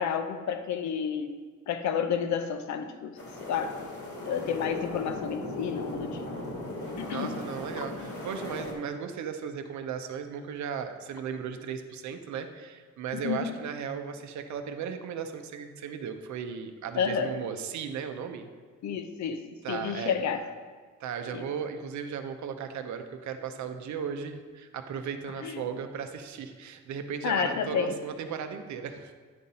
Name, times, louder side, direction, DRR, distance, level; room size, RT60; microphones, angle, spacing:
voice 1, 0.0-1.4 1.7-3.8 4.2-6.3 7.0-7.4 7.8-7.9 13.1-13.6 17.0-17.3 18.8-20.4 21.3-21.4 25.4-25.6 27.2-27.9, left 7 dB, 70° left, 8 dB, 0.7 m, -30 dB
sound 1, 3.2-8.7, left 2 dB, 50° left, 1.7 m, -37 dB
voice 2, 7.1-18.5 19.6-20.2 21.0-29.1, right 7 dB, 70° right, 7 dB, 0.7 m, -36 dB
9.7 x 3.9 x 4.2 m, 1.5 s
cardioid pair, 90°, 30 cm